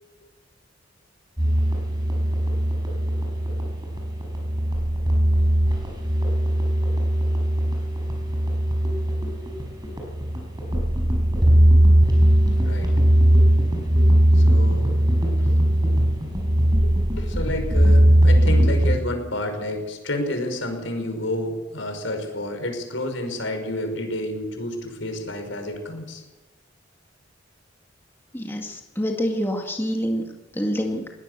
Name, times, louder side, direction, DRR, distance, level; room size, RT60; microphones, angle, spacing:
sound 1, 1.4-19.0, right 1 dB, 20° right, 5.7 m, -19 dB
voice 1, 14.3-14.9 15.4-15.5 16.8-26.2, left 1 dB, 85° left, 5 dB, 5.5 m, -30 dB
voice 2, 28.3-30.3 30.5-31.0, equal, 10° left, 2 dB, 2.1 m, -26 dB
22.5 x 18.0 x 6.8 m, 1.2 s
head